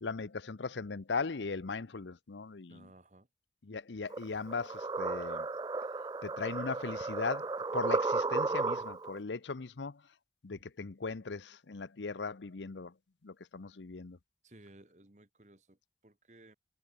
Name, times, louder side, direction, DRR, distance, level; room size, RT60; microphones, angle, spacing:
voice 1, 0.0-2.9 3.6-5.5 6.2-10.0 10.4-12.9 13.2-14.2, left 4 dB, 85° left, 0.8 m, -38 dB
voice 2, 2.7-3.3 14.4-15.8 16.0-16.6, right 1 dB, 40° right, 1.8 m, -58 dB
sound 1, 4.1-9.2, right 3 dB, 20° right, 0.3 m, -34 dB
head